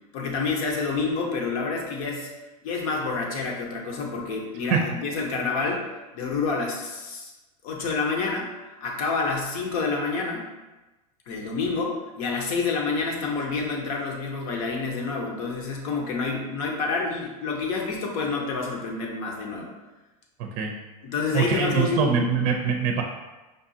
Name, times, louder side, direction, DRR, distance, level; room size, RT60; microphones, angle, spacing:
voice 1, 0.1-2.3 2.6-5.9 6.1-7.3 7.6-8.5 8.8-10.5 11.3-19.7 21.0-22.1, left 4 dB, 60° left, 0 dB, 1.0 m, -28 dB
voice 2, 21.3-23.0, right 6 dB, 50° right, 2 dB, 0.5 m, -23 dB
5.1 x 2.4 x 2.7 m, 1.1 s
hypercardioid pair, 105°, 20 cm